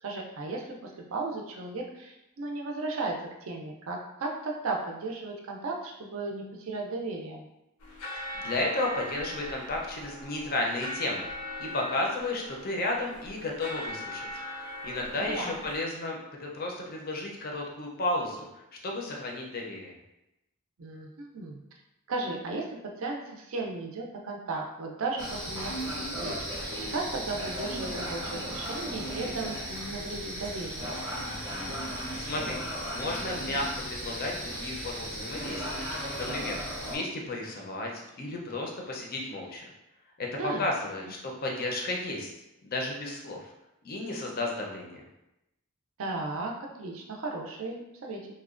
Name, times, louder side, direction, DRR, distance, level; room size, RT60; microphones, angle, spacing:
voice 1, 0.0-7.5 15.1-15.6 20.8-21.6 22.1-30.9 40.4-40.6 46.0-48.3, right 3 dB, 65° right, 0 dB, 0.4 m, -35 dB
sound 1, 7.8-15.8, left 1 dB, 85° left, 0.6 m, -40 dB
voice 2, 8.1-11.3 11.6-14.3 14.6-18.5 18.8-19.9 32.2-32.6 32.9-35.8 36.2-39.6 40.2-42.3 42.6-43.5 43.8-45.0, left 2 dB, 40° left, 0 dB, 0.4 m, -33 dB
sound 2, 25.2-37.0, equal, 20° right, 0.6 m, -36 dB
2.8 x 2.1 x 2.4 m, 0.90 s
head